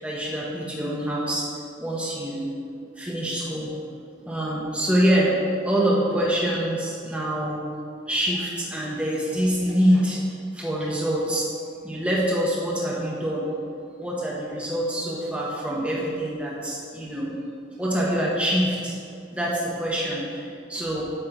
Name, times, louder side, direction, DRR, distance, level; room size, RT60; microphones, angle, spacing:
voice 1, 0.0-1.5 1.8-2.5 3.0-3.7 4.2-5.3 5.6-7.6 8.1-10.2 10.5-11.5 11.8-13.5 14.0-17.3 17.8-19.0 19.3-21.0, equal, 5° right, -6 dB, 1.0 m, -25 dB
8.8 x 3.2 x 6.0 m, 2.5 s
head